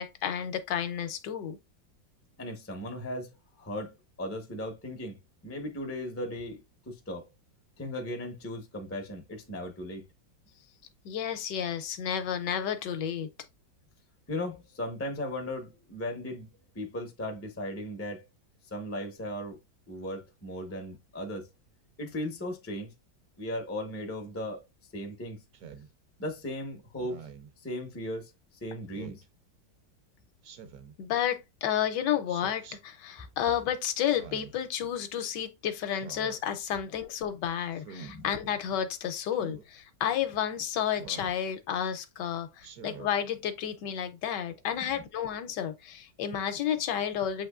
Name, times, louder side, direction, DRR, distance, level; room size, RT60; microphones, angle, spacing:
voice 1, 0.0-1.6 11.0-13.3 31.0-47.5, left 9 dB, 75° left, 1.2 m, -31 dB
voice 2, 2.4-3.3 3.6-5.2 5.4-7.2 7.8-10.0 14.3-16.5 16.7-18.2 18.7-19.6 19.9-21.5 22.0-22.9 23.4-24.6 24.9-25.4 26.2-27.3 27.6-28.3 28.6-29.2 38.1-38.3 44.8-44.9, left 1 dB, 20° left, 0.3 m, -37 dB
Speech synthesizer, 25.5-25.9 27.0-27.5 28.9-29.2 30.4-30.9 32.3-32.8 34.0-34.6 35.9-36.4 37.7-38.1 39.3-39.6 41.0-41.4 42.6-43.1, right 6 dB, 65° right, 1.0 m, -46 dB
7.5 x 2.9 x 2.3 m
omnidirectional pair, 2.0 m